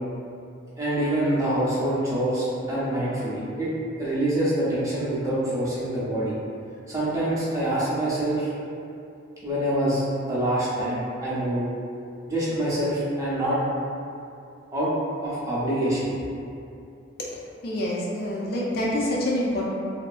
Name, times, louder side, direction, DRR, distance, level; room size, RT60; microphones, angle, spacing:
voice 1, 0.8-3.7 4.0-6.3 6.9-8.5 9.4-11.7 12.3-13.6 14.7-14.9 15.2-16.1, right 1 dB, 15° right, -9 dB, 0.5 m, -25 dB
voice 2, 17.6-19.7, left 1 dB, 45° left, -5 dB, 0.3 m, -26 dB
2.6 x 2.3 x 2.3 m, 2.6 s
head